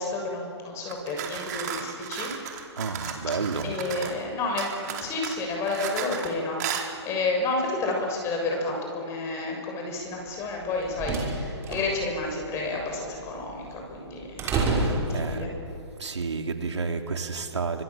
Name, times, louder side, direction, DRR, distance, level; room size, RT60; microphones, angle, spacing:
voice 1, 0.0-2.3 3.6-6.6 7.0-15.5, left 3 dB, 20° left, 1 dB, 6.8 m, -30 dB
sound 1, 0.9-4.2 4.6-6.3 6.6-6.9, right 8 dB, 40° right, 3.9 m, -34 dB
voice 2, 2.8-3.7 14.7-15.5 16.0-17.8, right 4 dB, 80° right, 5 dB, 3.1 m, -31 dB
sound 2, 10.5-15.8, right 3 dB, 15° right, 5.9 m, -30 dB
30.0 x 26.0 x 7.5 m, 2.6 s
hypercardioid pair, 145°, 14 cm